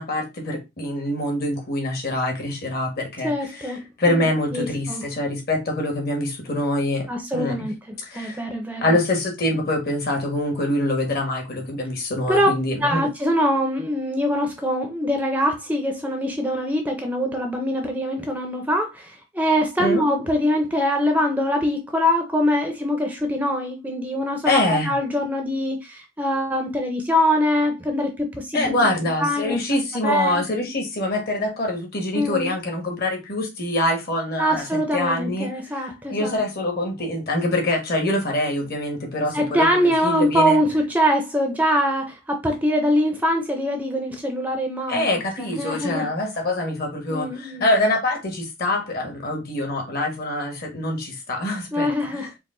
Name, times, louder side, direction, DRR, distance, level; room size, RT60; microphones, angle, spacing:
voice 1, 0.0-7.1 7.3-7.7 8.0-8.4 8.8-13.0 19.8-20.0 24.4-24.9 28.5-35.5 35.8-40.6 44.9-52.3, left 1 dB, 50° left, 1.3 m, -25 dB
voice 2, 3.2-5.0 7.1-9.0 12.3-12.5 12.8-28.9 29.2-29.6 30.0-30.7 32.1-32.5 34.4-36.4 39.3-46.1 47.1-47.7 51.7-52.3, equal, 10° right, 0.5 m, -23 dB
4.6 x 2.1 x 3.7 m
head